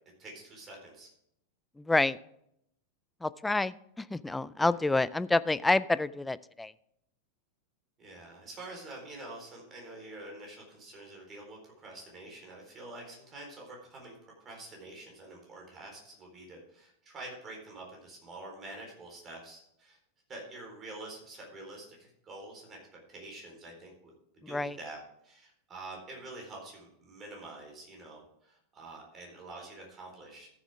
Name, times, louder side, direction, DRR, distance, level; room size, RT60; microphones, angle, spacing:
voice 1, 0.2-1.1 4.6-4.7 8.0-20.0 20.3-22.8 23.1-24.1 24.5-25.0 25.2-30.5, right 2 dB, 25° right, 0 dB, 4.1 m, -47 dB
voice 2, 1.8-2.2 3.2-6.7 24.4-24.8, left 2 dB, 5° left, 17 dB, 0.3 m, -28 dB
14.5 x 7.4 x 3.5 m, 0.74 s
figure-of-eight pair, 90°, 0 cm